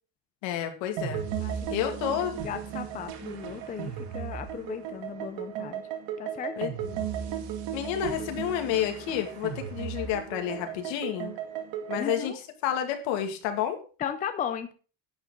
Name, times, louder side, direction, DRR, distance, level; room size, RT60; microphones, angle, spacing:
voice 1, 0.4-1.2 1.7-2.3 6.6-7.1 7.7-11.3 11.9-13.8, left 10 dB, 70° left, 5 dB, 2.3 m, -30 dB
sound 1, 1.0-12.3, right 9 dB, 65° right, 2.2 m, -35 dB
voice 2, 1.4-5.8 6.2-6.5 12.0-12.4 14.0-14.7, left 8 dB, 20° left, 9 dB, 0.5 m, -36 dB
11.0 x 9.0 x 3.8 m, 0.36 s
cardioid pair, 175°, 46 cm